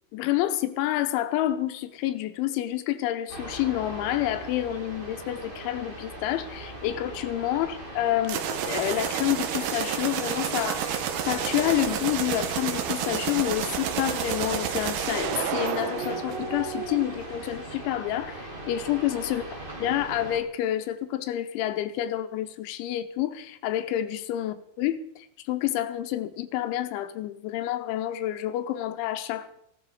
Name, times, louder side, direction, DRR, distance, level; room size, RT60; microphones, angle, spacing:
voice 1, 0.1-19.4 19.8-29.6, left 13 dB, 85° left, 11 dB, 3.2 m, -29 dB
sound 1, 3.3-20.4, right 2 dB, 50° right, 0.6 m, -39 dB
sound 2, 8.2-16.9, right 9 dB, 75° right, 2.3 m, -30 dB
15.5 x 12.0 x 4.8 m, 0.76 s
omnidirectional pair, 5.5 m